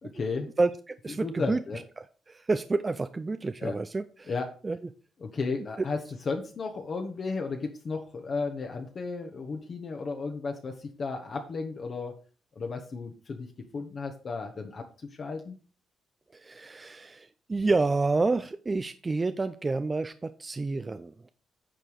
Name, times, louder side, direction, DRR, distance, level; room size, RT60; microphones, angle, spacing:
voice 1, 0.0-0.5 1.2-1.8 3.6-3.8 4.3-4.6 5.2-12.2 12.5-13.5 13.7-14.8 15.2-15.6, left 4 dB, 45° left, 3 dB, 1.3 m, -34 dB
voice 2, 0.6-1.6 2.0-4.3 4.6-4.8 16.3-21.3, right 3 dB, 25° right, 11 dB, 0.5 m, -29 dB
9.0 x 4.7 x 5.1 m, 0.38 s
cardioid pair, 90°, 0 cm